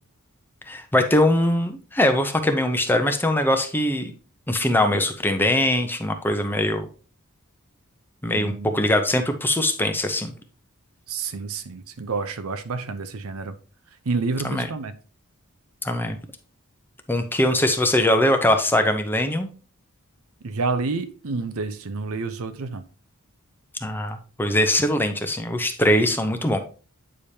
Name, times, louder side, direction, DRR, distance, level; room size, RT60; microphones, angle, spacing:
voice 1, 0.7-4.1 4.5-6.9 8.2-10.3 14.4-14.7 15.8-16.2 17.1-19.5 23.8-26.6, left 1 dB, 10° left, 0.7 m, -22 dB
voice 2, 8.3-8.8 11.1-13.5 14.1-14.9 20.4-22.8, right 4 dB, 65° right, 0.7 m, -29 dB
8.7 x 5.0 x 2.8 m
head